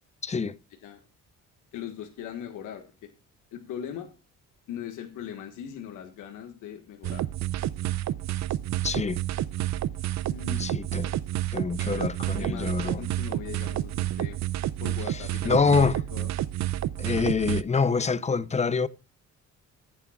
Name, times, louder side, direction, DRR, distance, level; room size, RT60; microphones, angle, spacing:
voice 1, 0.2-0.6 8.8-9.2 10.6-11.2 11.5-13.0 15.1-15.2 15.4-16.0 17.0-18.9, left 5 dB, 25° left, 0.6 m, -26 dB
voice 2, 1.7-3.1 3.5-4.1 4.7-7.2 10.3-10.7 11.8-12.1 12.4-14.4 14.8-16.3, left 9 dB, 90° left, 1.6 m, -40 dB
sound 1, 7.0-17.6, right 13 dB, 65° right, 0.6 m, -30 dB
14.5 x 9.2 x 2.4 m
cardioid pair, 90°, 30 cm